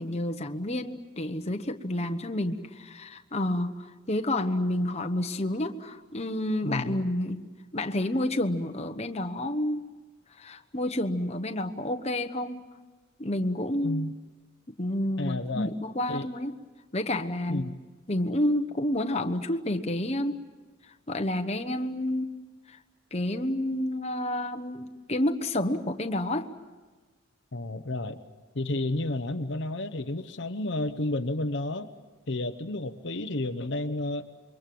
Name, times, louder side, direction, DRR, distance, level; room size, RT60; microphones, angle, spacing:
voice 1, 0.0-7.4 7.7-9.9 10.4-12.7 13.2-14.1 14.8-16.6 16.9-17.6 18.1-20.4 21.1-22.4 22.7-22.8 23.1-26.5, left 1 dB, 30° left, 6 dB, 1.2 m, -29 dB
voice 2, 6.6-7.0 13.8-14.2 15.2-15.7 16.1-16.3 17.5-17.7 27.5-28.2 28.5-31.9 32.3-34.3, left 2 dB, 55° left, 8 dB, 1.0 m, -31 dB
28.0 x 23.5 x 7.8 m, 1.3 s
head